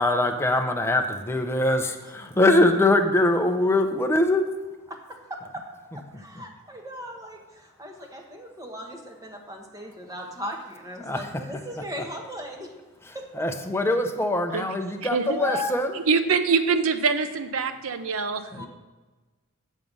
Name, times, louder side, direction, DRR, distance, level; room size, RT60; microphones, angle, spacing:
voice 1, 0.0-4.8 5.9-6.4 11.0-11.5 11.8-12.1 13.0-16.0 18.5-18.7, left 2 dB, 10° left, 4 dB, 0.7 m, -23 dB
voice 2, 5.3-5.6 5.9-12.7 13.1-13.2 15.3-15.7 18.5-18.7, equal, 15° right, 2 dB, 1.2 m, -37 dB
voice 3, 16.1-18.7, right 5 dB, 70° right, 9 dB, 0.7 m, -24 dB
7.3 x 6.5 x 5.4 m, 1.2 s
head